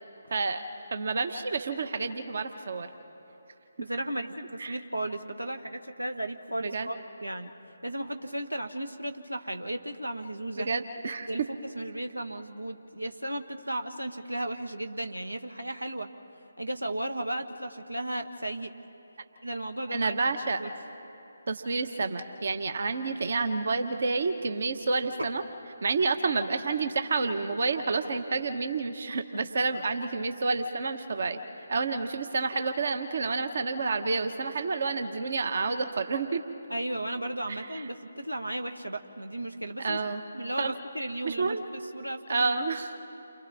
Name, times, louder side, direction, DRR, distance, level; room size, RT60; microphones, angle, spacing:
voice 1, 0.3-0.6 0.9-2.9 4.6-4.7 6.6-6.9 10.6-11.3 19.9-20.6 21.5-25.4 25.8-31.4 31.7-36.4 37.5-37.9 39.8-40.2 40.6-40.7 41.2-41.6 42.3-43.0, right 4 dB, 50° right, 7 dB, 1.3 m, -29 dB
voice 2, 3.8-7.5 7.8-10.7 11.3-16.1 16.6-18.7 19.4-20.1 20.6-20.7 25.2-25.3 36.7-40.0 40.3-42.5, right 1 dB, 85° right, 7 dB, 1.4 m, -35 dB
29.5 x 26.0 x 4.3 m, 3.0 s
figure-of-eight pair, 150°, 0 cm